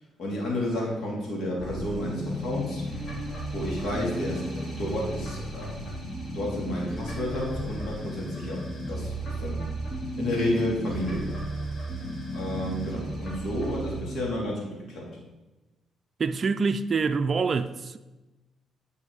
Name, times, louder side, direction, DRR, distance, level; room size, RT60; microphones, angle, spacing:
voice 1, 0.2-2.8 3.5-5.9 6.3-8.6 8.9-9.7 10.2-11.3 12.3-14.6 14.9-15.1, left 1 dB, 65° left, 3.3 m, -31 dB
Silver Alien Factory, 1.6-14.0, right 1 dB, 35° left, 3.1 m, -34 dB
voice 2, 16.2-18.0, right 4 dB, 40° right, 0.4 m, -26 dB
9.4 x 5.4 x 4.9 m
cardioid pair, 90°, 0 cm